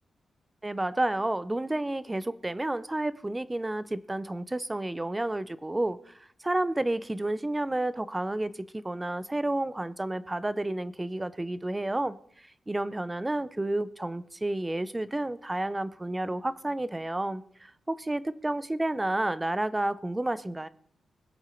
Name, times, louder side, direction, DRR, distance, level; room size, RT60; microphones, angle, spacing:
voice 1, 0.6-6.1 6.4-12.2 12.7-20.7, right 1 dB, 10° right, 16 dB, 0.5 m, -30 dB
21.0 x 8.0 x 4.4 m, 0.64 s
wide cardioid pair, 170°, 0 cm